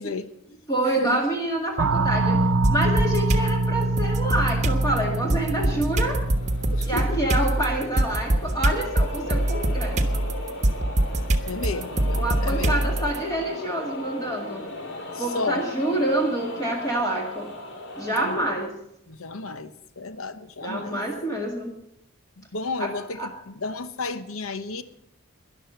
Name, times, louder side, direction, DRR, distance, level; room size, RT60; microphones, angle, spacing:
voice 1, 0.0-0.6 0.9-1.2 6.7-7.4 11.5-12.9 15.1-15.7 18.1-18.5 19.1-21.0 22.4-24.8, left 3 dB, 80° left, 1.0 m, -33 dB
voice 2, 0.7-2.4 2.7-6.2 6.9-10.2 12.2-14.7 15.2-17.5 18.0-18.7 20.6-21.7 22.8-22.9 23.2-23.3, right 1 dB, 15° left, 2.0 m, -27 dB
sound 1, 1.8-8.1, right 2 dB, 75° right, 0.7 m, -26 dB
sound 2, 2.6-3.5 4.0-13.2, right 1 dB, 35° right, 1.2 m, -24 dB
sound 3, 4.1-18.4, left 1 dB, 55° left, 2.5 m, -38 dB
12.5 x 11.0 x 7.9 m
head